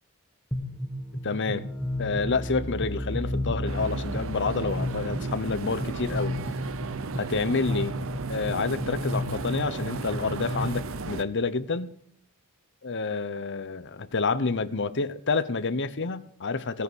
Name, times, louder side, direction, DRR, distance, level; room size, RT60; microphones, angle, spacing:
sound 1, 0.5-10.6, equal, 10° left, 1.9 m, -33 dB
voice 1, 1.2-1.7 2.0-6.4 7.2-7.9 8.3-11.9 12.8-16.8, left 4 dB, 55° left, 0.9 m, -28 dB
sound 2, 3.7-11.2, right 4 dB, 65° right, 0.8 m, -35 dB
20.0 x 6.8 x 7.2 m
head